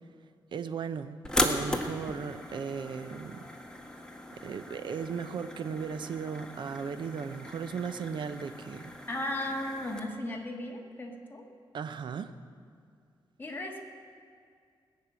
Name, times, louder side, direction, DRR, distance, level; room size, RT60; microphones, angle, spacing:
voice 1, 0.5-3.5 4.4-8.9 11.7-12.3, right 6 dB, 65° right, 11 dB, 0.8 m, -36 dB
sound 1, 1.3-10.0, left 1 dB, 10° left, 1.4 m, -37 dB
voice 2, 9.1-11.5 13.4-13.8, left 1 dB, 25° left, 1 dB, 1.9 m, -36 dB
19.5 x 6.6 x 9.0 m, 2.2 s
cardioid pair, 110°, 9 cm